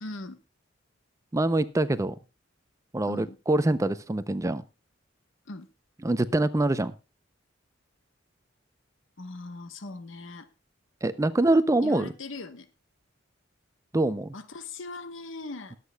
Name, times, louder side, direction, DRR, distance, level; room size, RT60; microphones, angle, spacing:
voice 1, 0.0-0.4 3.1-3.4 5.5-5.7 9.2-10.5 11.3-12.7 14.3-15.8, left 2 dB, 75° left, 1.0 m, -40 dB
voice 2, 1.3-2.2 2.9-4.6 6.0-6.9 11.0-12.1 13.9-14.3, right 2 dB, 15° right, 0.5 m, -24 dB
21.0 x 8.2 x 2.2 m
head